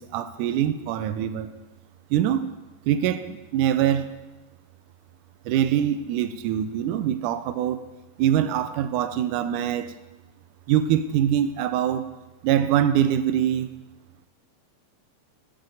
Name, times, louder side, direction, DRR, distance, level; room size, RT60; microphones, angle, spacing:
voice 1, 0.0-1.5 2.1-2.5 2.9-4.1 5.5-7.8 8.2-9.9 10.7-12.1 12.4-13.8, right 10 dB, 80° right, 11 dB, 2.0 m, -23 dB
14.0 x 5.0 x 9.1 m, 1.1 s
omnidirectional pair, 3.9 m